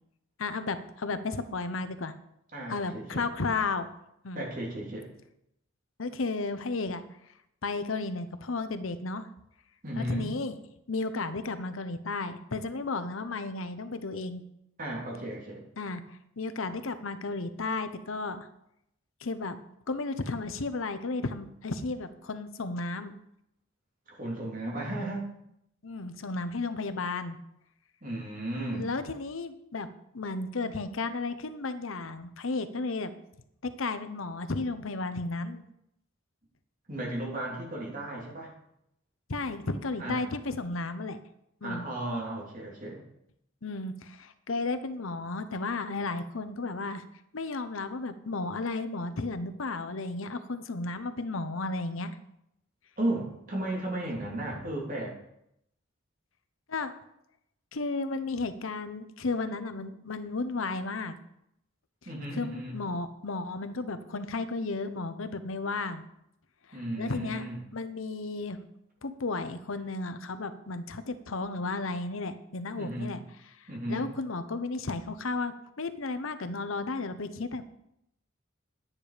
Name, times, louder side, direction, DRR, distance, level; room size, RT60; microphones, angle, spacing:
voice 1, 0.4-2.1 2.7-3.9 4.2-4.4 6.0-7.0 7.6-9.3 9.9-10.6 10.9-14.4 15.8-18.5 19.2-19.6 19.9-23.1 25.8-27.4 28.7-29.9 30.1-33.1 33.6-35.6 39.3-41.2 41.6-41.8 43.6-47.0 47.3-52.2 56.7-56.9 57.7-61.1 62.3-66.1 66.7-67.4 67.7-68.6 69.0-73.2 73.9-77.6, left 3 dB, 80° left, 11 dB, 0.9 m, -33 dB
voice 2, 2.5-3.3 4.3-5.1 9.8-10.3 14.8-15.6 24.1-25.3 28.0-28.9 36.9-38.5 40.0-40.3 41.6-43.0 53.0-55.1 62.0-62.8 66.7-67.6 72.8-73.2 73.7-74.1, right 1 dB, 40° right, -2 dB, 3.2 m, -34 dB
10.5 x 9.8 x 5.0 m, 0.79 s
head